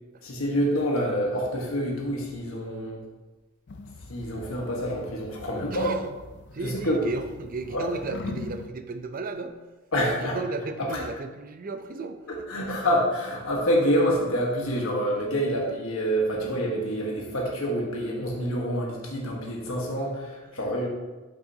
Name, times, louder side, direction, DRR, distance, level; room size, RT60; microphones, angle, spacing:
voice 1, 0.2-3.0 4.1-5.9 6.6-7.0 7.7-7.9 9.9-10.4 10.8-11.0 12.3-20.9, equal, 70° left, -1 dB, 1.3 m, -27 dB
sound 1, 3.7-8.7, left 3 dB, 55° left, 0.5 m, -42 dB
voice 2, 5.7-6.0 6.5-9.5 10.1-12.8 16.3-16.4, right 3 dB, 40° right, 8 dB, 0.5 m, -35 dB
8.6 x 5.6 x 2.7 m, 1.2 s
head